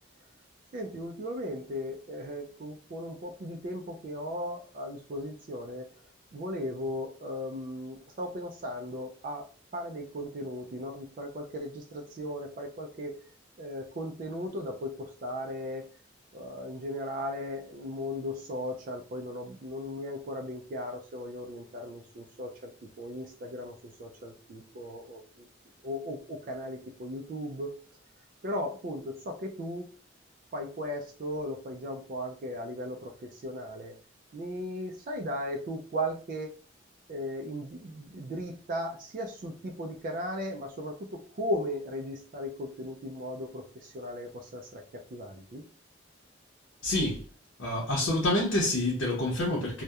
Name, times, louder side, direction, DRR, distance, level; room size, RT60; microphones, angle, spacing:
voice 1, 0.7-5.9 6.3-9.4 9.7-13.2 13.6-15.9 16.3-22.7 23.0-25.5 25.8-27.8 28.4-29.8 30.5-33.9 34.3-36.5 37.1-45.7, equal, 45° right, 0.3 m, -37 dB
voice 2, 46.8-47.2 47.6-49.8, left 1 dB, 85° left, 0.7 m, -27 dB
2.7 x 2.1 x 2.2 m
head